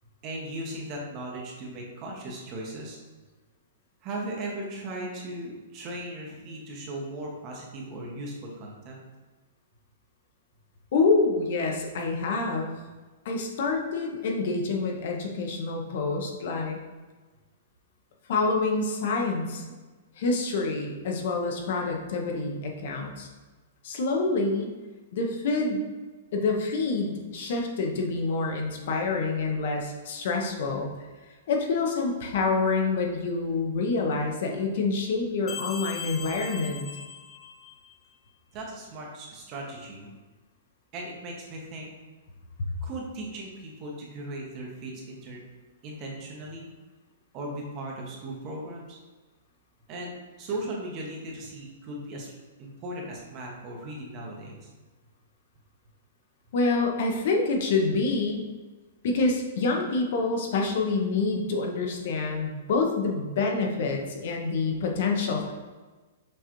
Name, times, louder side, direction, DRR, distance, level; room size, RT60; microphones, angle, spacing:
voice 1, 0.2-3.0 4.0-9.0 38.5-40.1 40.9-41.9 42.8-45.4 45.8-46.7 47.3-49.0 49.9-52.3 52.6-54.7, right 1 dB, 35° right, -1 dB, 0.9 m, -37 dB
voice 2, 10.9-12.7 13.2-16.8 18.3-19.6 20.2-23.3 23.8-24.7 25.1-25.8 26.3-30.9 31.5-36.8 56.5-58.4 59.0-65.5, left 3 dB, 60° left, 1 dB, 0.7 m, -27 dB
sound 1, 35.5-38.0, left 7 dB, 25° left, 0.4 m, -39 dB
6.1 x 2.4 x 3.0 m, 1.3 s
hypercardioid pair, 150°, 0 cm